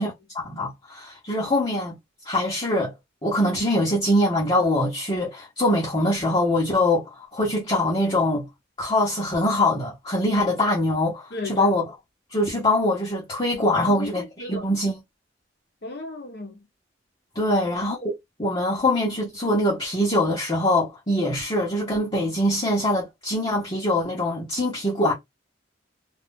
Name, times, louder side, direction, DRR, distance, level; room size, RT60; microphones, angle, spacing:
voice 1, 0.0-1.9 2.2-2.9 3.2-8.5 8.8-11.8 12.3-15.0 17.3-18.1 18.4-25.1, left 1 dB, 25° left, 1.0 m, -23 dB
voice 2, 11.3-11.8 13.7-14.6 15.8-16.7 17.5-17.6, left 2 dB, 60° left, 0.9 m, -34 dB
2.5 x 2.4 x 3.7 m
head